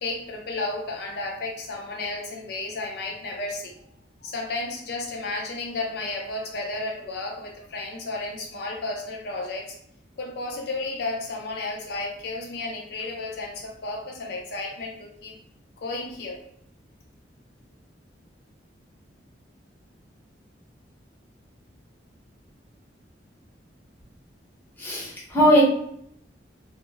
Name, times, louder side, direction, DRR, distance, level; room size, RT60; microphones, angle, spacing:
voice 1, 0.0-3.7 4.2-9.8 10.2-15.4 15.8-16.4, left 2 dB, 60° left, 0 dB, 0.4 m, -32 dB
voice 2, 24.8-25.6, equal, 10° left, -6 dB, 0.7 m, -19 dB
2.1 x 2.0 x 3.2 m, 0.68 s
head